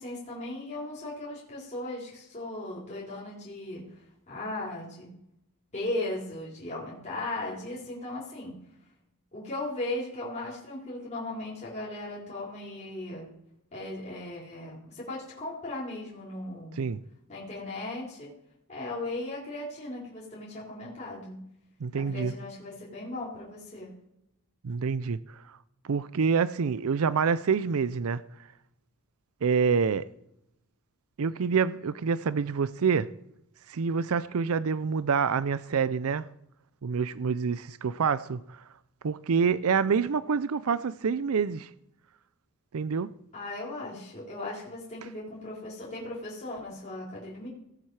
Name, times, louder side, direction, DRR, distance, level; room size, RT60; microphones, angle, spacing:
voice 1, 0.0-3.8 4.3-5.1 5.7-8.6 9.3-13.3 13.7-16.8 17.3-18.3 18.7-21.4 21.9-23.9 43.3-47.5, left 2 dB, 30° left, 3.8 m, -37 dB
voice 2, 21.8-22.3 24.6-25.2 25.8-28.2 29.4-30.1 31.2-33.1 33.7-36.3 36.8-38.6 39.0-41.7 42.7-43.1, right 6 dB, 70° right, 0.5 m, -27 dB
18.0 x 7.3 x 4.8 m
head